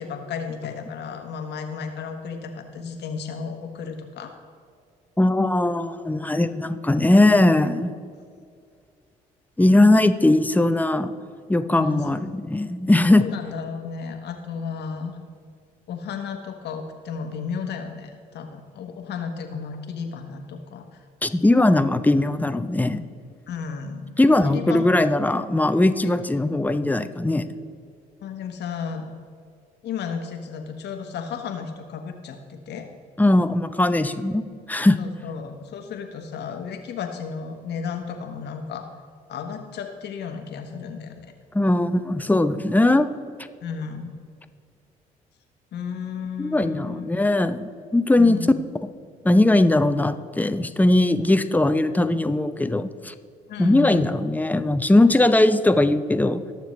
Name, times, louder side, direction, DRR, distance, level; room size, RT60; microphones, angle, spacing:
voice 1, 0.0-4.4 11.8-12.0 13.1-15.2 15.9-21.0 23.5-24.2 24.4-24.9 26.0-26.1 28.2-29.1 29.8-32.9 34.0-34.2 35.0-38.9 39.3-41.3 43.6-44.1 45.7-47.2 48.2-48.6 53.5-54.1, left 6 dB, 65° left, 5 dB, 1.3 m, -33 dB
voice 2, 5.2-8.0 9.6-11.1 11.5-13.2 21.2-23.0 24.2-27.4 33.2-34.4 34.7-35.0 41.5-43.1 46.4-48.4 49.2-53.1 53.6-56.4, left 2 dB, 10° left, 10 dB, 0.7 m, -19 dB
20.0 x 6.8 x 3.2 m, 2.1 s
hypercardioid pair, 50°, 19 cm